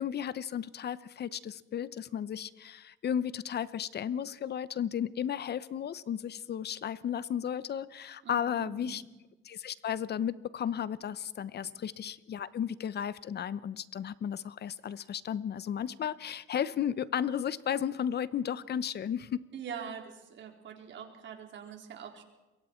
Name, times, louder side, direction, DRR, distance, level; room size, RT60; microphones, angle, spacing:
voice 1, 0.0-9.0 9.4-19.4, left 9 dB, 55° left, 16 dB, 0.9 m, -34 dB
voice 2, 8.2-9.0 11.6-11.7 19.5-22.2, right 7 dB, 70° right, 3 dB, 3.8 m, -44 dB
27.0 x 23.0 x 4.5 m, 1.1 s
cardioid pair, 90°, 20 cm